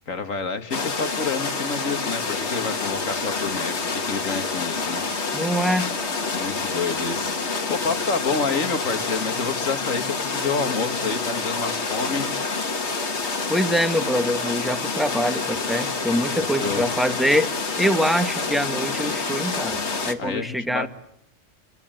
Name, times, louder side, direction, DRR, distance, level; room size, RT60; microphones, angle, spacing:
voice 1, 0.1-5.0 6.3-12.3 16.3-16.9 20.2-20.9, left 4 dB, 85° left, 8 dB, 2.3 m, -29 dB
sound 1, 0.7-20.1, left 4 dB, 60° left, 2.0 m, -27 dB
voice 2, 5.3-5.9 13.5-17.5 17.8-19.8 20.0-20.9, equal, ahead, 9 dB, 1.3 m, -24 dB
28.0 x 23.0 x 9.0 m, 0.74 s
omnidirectional pair, 1.3 m